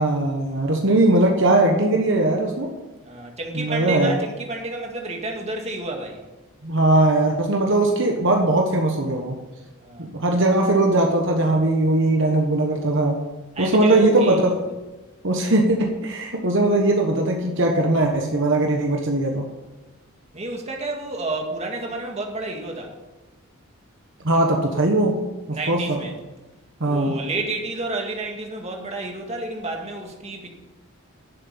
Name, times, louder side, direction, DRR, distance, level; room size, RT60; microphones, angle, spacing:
voice 1, 0.0-2.7 3.5-4.2 6.6-9.4 10.0-13.2 13.6-14.6 15.2-19.5 24.2-25.2 25.5-26.0 26.8-27.2, right 2 dB, 60° right, 2 dB, 1.3 m, -20 dB
voice 2, 3.0-6.2 9.8-10.1 13.6-14.4 20.3-22.9 25.5-26.1 26.8-30.5, right 2 dB, 30° right, 1 dB, 2.0 m, -30 dB
11.0 x 7.6 x 8.8 m, 1.1 s
head